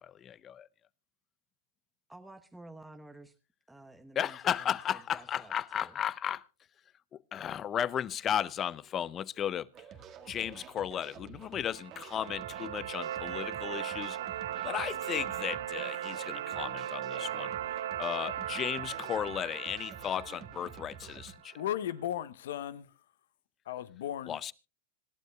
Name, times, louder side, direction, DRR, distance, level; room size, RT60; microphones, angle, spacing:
voice 1, 0.2-0.7 4.2-6.4 7.3-9.7 10.3-14.2 14.6-17.5 18.0-21.5 24.3-24.5, left 9 dB, 30° left, 0.6 m, -34 dB
voice 2, 2.1-3.4 3.7-6.0, right 2 dB, 5° right, 1.0 m, -52 dB
sound 1, 9.7-21.3, right 8 dB, 30° right, 1.5 m, -50 dB
sound 2, 11.6-21.7, right 11 dB, 80° right, 1.0 m, -38 dB
voice 3, 21.6-22.9 23.7-24.4, left 11 dB, 75° left, 0.9 m, -35 dB
26.0 x 12.0 x 2.3 m
hypercardioid pair, 130°, 0 cm